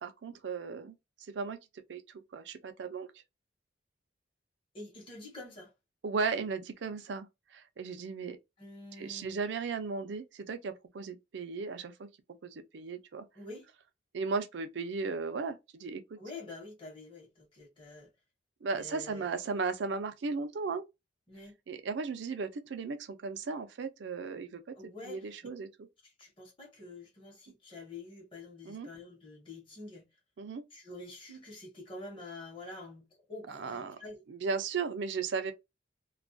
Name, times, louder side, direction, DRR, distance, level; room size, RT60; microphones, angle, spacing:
voice 1, 0.0-1.0 1.3-1.6 1.9-2.0 2.3-3.1 6.0-8.4 9.0-12.1 12.4-13.3 14.1-16.2 18.6-20.8 21.7-24.6 25.1-25.7 28.7-28.9 30.4-30.6 33.5-34.0 34.3-35.5, right 4 dB, 70° right, 0.4 m, -36 dB
voice 2, 4.7-5.7 8.6-9.4 13.3-13.6 16.2-18.1 18.7-19.3 21.3-21.5 24.7-25.3 26.0-30.1 30.7-34.2, left 2 dB, 30° left, 0.9 m, -47 dB
2.3 x 2.1 x 2.5 m
head